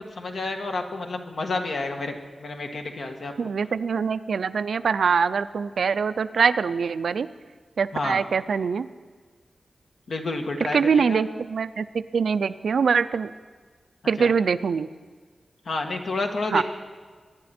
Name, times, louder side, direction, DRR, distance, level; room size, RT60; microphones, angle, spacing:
voice 1, 0.2-3.3 7.9-8.2 10.1-11.2 14.2-14.3 15.6-16.6, left 3 dB, 60° left, 4 dB, 1.4 m, -30 dB
voice 2, 3.4-7.3 7.8-8.9 10.7-13.3 14.1-14.9 16.5-16.6, right 6 dB, 85° right, 13 dB, 0.4 m, -23 dB
23.0 x 10.5 x 4.3 m, 1.5 s
wide cardioid pair, 160°, 0 cm